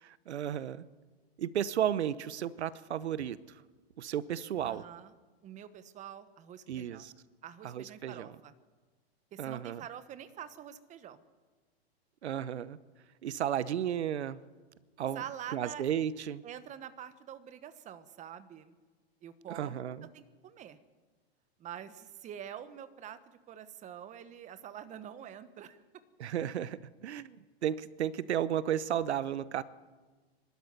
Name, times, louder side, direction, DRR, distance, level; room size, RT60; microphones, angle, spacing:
voice 1, 0.0-0.9 1.4-3.4 4.0-4.8 6.7-7.1 7.6-8.3 9.4-9.8 12.2-12.8 13.2-14.4 15.0-15.2 15.5-16.4 19.5-20.1 26.2-27.4 27.6-29.6, right 10 dB, 80° right, 17 dB, 0.9 m, -33 dB
voice 2, 4.6-5.1 5.4-7.1 7.4-8.5 9.3-11.2 15.1-15.9 16.4-18.7 19.2-19.8 20.1-20.8 21.6-25.8, right 9 dB, 20° right, 12 dB, 1.2 m, -46 dB
23.5 x 13.0 x 9.5 m, 1.3 s
hypercardioid pair, 130°, 33 cm